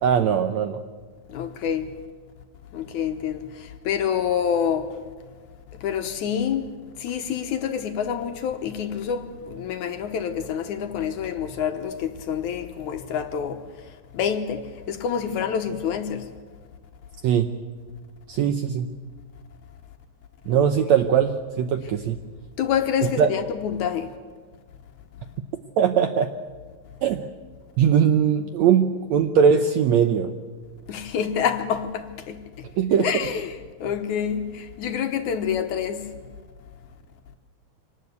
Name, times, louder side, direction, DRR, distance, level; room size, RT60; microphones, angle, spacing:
voice 1, 0.0-0.8 17.2-17.5 18.3-18.9 20.5-22.2 23.2-23.3 25.8-26.3 27.0-27.2 27.8-30.3 32.8-33.1, right 8 dB, 75° right, 1.7 m, -20 dB
voice 2, 1.3-2.0 2.7-5.0 5.7-16.3 20.5-20.7 22.6-24.1 30.9-32.7 33.0-36.1, left 8 dB, 65° left, 2.2 m, -27 dB
25.0 x 19.0 x 8.3 m
omnidirectional pair, 4.1 m